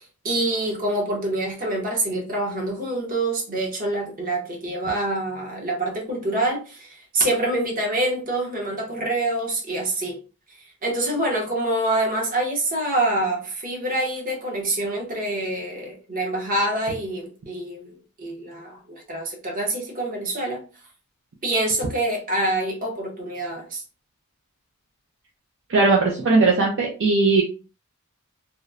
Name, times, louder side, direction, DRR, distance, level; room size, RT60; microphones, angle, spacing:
voice 1, 0.0-10.2 10.8-20.6 21.4-23.8, right 1 dB, 40° right, 0.8 m, -26 dB
voice 2, 25.7-27.4, right 3 dB, 60° right, 0.4 m, -18 dB
2.9 x 2.0 x 2.4 m
head